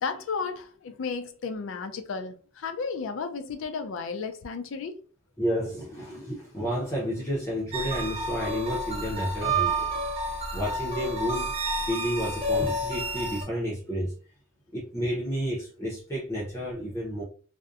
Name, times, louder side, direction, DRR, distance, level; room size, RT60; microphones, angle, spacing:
voice 1, 0.0-5.0, left 5 dB, 65° left, 0.4 m, -33 dB
voice 2, 5.4-9.9 10.5-11.5 11.9-14.1 14.7-17.2, equal, 15° left, 0.6 m, -31 dB
sound 1, 7.7-13.4, right 1 dB, 30° right, 0.6 m, -30 dB
2.6 x 2.1 x 2.4 m
head